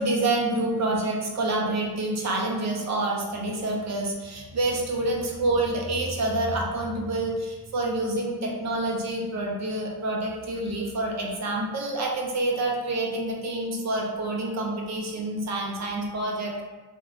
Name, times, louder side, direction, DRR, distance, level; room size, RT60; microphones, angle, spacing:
voice 1, 0.0-16.6, right 2 dB, 45° right, -1 dB, 0.6 m, -27 dB
2.6 x 2.2 x 3.6 m, 1.3 s
cardioid pair, 110°, 38 cm